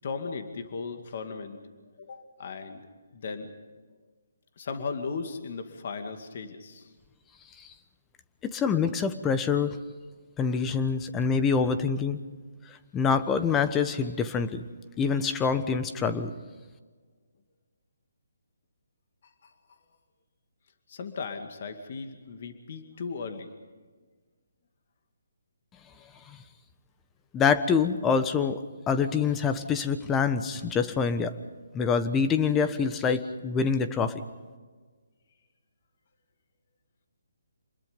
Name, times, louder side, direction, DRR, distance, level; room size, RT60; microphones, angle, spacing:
voice 1, 0.0-1.6 2.0-2.8 3.1-3.5 4.6-6.9 19.4-19.5 20.9-23.5, left 4 dB, 50° left, 6 dB, 2.4 m, -36 dB
voice 2, 8.5-9.8 10.4-12.2 12.9-14.6 15.0-16.3 27.3-28.6 28.9-31.3 31.7-34.1, left 6 dB, 15° left, 10 dB, 1.2 m, -25 dB
28.5 x 21.5 x 5.4 m, 1.4 s
hypercardioid pair, 155°, 0 cm